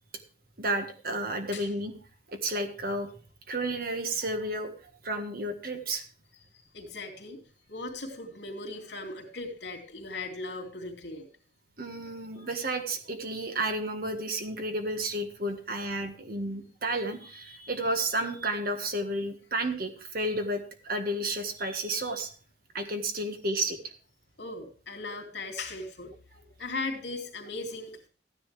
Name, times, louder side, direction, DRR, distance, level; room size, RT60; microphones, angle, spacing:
voice 1, 0.6-1.9 2.3-3.1 3.5-6.0 11.8-22.3 22.7-23.8, right 1 dB, 50° right, 6 dB, 1.7 m, -32 dB
voice 2, 6.7-7.4 7.7-11.3 12.4-12.5 24.4-28.1, left 3 dB, 70° left, 2 dB, 2.8 m, -38 dB
14.5 x 10.0 x 3.4 m, 0.40 s
head